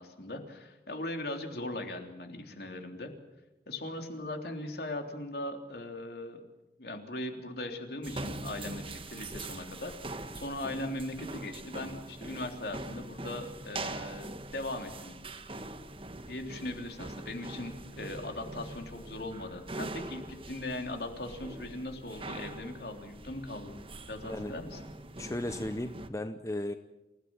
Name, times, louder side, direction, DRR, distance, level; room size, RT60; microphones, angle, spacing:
voice 1, 0.0-3.1 3.7-6.4 6.8-15.2 16.3-23.8 24.1-24.8, left 1 dB, 60° left, 4 dB, 3.4 m, -39 dB
sound 1, 8.0-26.1, right 2 dB, 30° right, 1.4 m, -43 dB
voice 2, 25.2-26.7, left 1 dB, 15° left, 9 dB, 0.8 m, -35 dB
27.5 x 16.5 x 8.9 m, 1.1 s
head